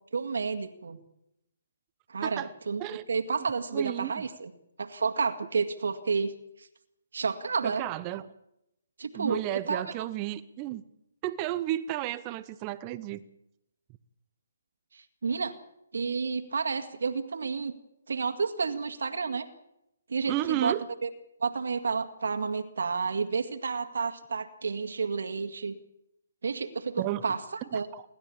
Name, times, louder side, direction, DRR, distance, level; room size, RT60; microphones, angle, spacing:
voice 1, 0.1-1.0 2.1-4.5 4.8-6.3 6.6-6.7 7.1-7.8 9.0-9.8 14.9-15.6 15.9-17.7 18.1-19.5 20.1-20.8 21.0-21.1 21.4-25.8 26.4-27.9, right 5 dB, 75° right, 7 dB, 2.0 m, -30 dB
voice 2, 3.7-4.2 7.6-8.3 9.2-10.8 11.2-13.2 20.3-20.9 27.0-27.2 27.7-28.0, right 14 dB, 25° right, 15 dB, 0.8 m, -32 dB
28.0 x 12.5 x 8.6 m, 0.84 s
hypercardioid pair, 150°, 0 cm